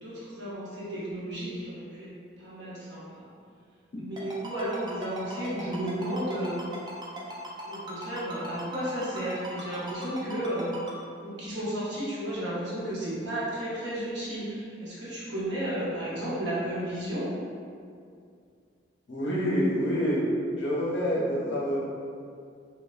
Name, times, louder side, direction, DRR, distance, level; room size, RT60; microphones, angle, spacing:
voice 1, 0.0-2.1 2.4-3.3 4.0-6.6 7.7-10.7 11.2-17.3, right 1 dB, 65° right, -8 dB, 0.7 m, -33 dB
Ringtone, 4.2-10.9, right 1 dB, 25° right, 0.4 m, -39 dB
voice 2, 19.1-20.2 20.6-21.8, equal, 65° left, -5 dB, 0.6 m, -27 dB
3.0 x 2.0 x 2.4 m, 2.3 s
head